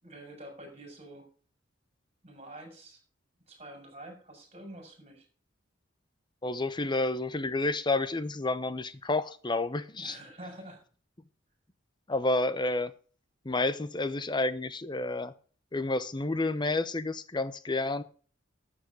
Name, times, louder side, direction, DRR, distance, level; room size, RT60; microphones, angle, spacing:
voice 1, 0.0-1.3 2.2-3.0 3.5-5.3 10.0-10.8, right 1 dB, 35° right, 5.7 m, -47 dB
voice 2, 6.4-10.2 12.1-12.9 13.4-15.3 15.7-18.0, left 2 dB, 25° left, 0.8 m, -30 dB
12.5 x 7.6 x 4.9 m
head